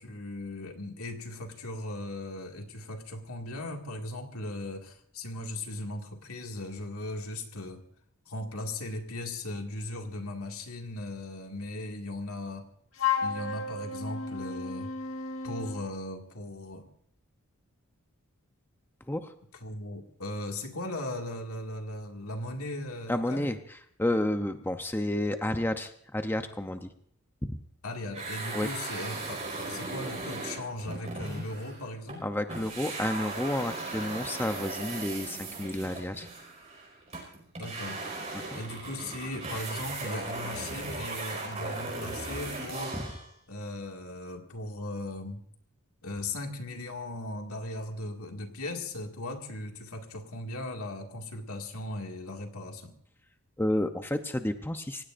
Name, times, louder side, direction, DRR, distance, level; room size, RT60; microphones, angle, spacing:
voice 1, 0.0-7.8 8.3-12.7 13.2-14.9 15.4-16.9 19.6-23.5 27.8-32.3 37.6-38.0 38.5-43.0 43.5-45.4 46.0-53.0, left 1 dB, 80° left, 3 dB, 2.2 m, -38 dB
Wind instrument woodwind instrument, 13.0-15.8, left 6 dB, 65° left, 1.3 m, -32 dB
voice 2, 23.1-26.9 27.5-27.6 28.5-28.7 32.2-36.3 38.3-38.6 43.0-43.1 53.6-55.0, left 1 dB, 10° left, 7 dB, 0.7 m, -31 dB
sound 1, 28.1-32.2 32.5-43.3, right 3 dB, 30° right, 5.1 m, -38 dB
27.5 x 16.5 x 2.6 m, 0.63 s
head